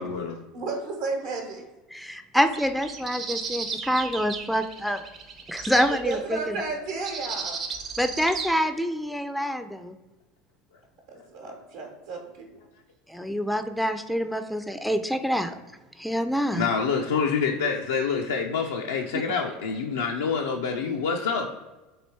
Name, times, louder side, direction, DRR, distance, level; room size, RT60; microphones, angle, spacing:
voice 1, 0.0-0.4 5.6-5.7 16.5-21.5, left 5 dB, 85° left, 1 dB, 0.3 m, -27 dB
voice 2, 0.5-1.6 5.6-7.6 11.1-12.5, right 3 dB, 75° right, 0 dB, 0.9 m, -33 dB
voice 3, 1.9-5.0 5.5-6.4 8.0-10.0 13.1-15.6 16.0-16.7, equal, ahead, 8 dB, 0.3 m, -26 dB
sound 1, 2.4-6.2 7.0-8.5, right 5 dB, 45° right, 0.6 m, -34 dB
3.1 x 2.7 x 4.3 m, 1.1 s
hypercardioid pair, 85°, 0 cm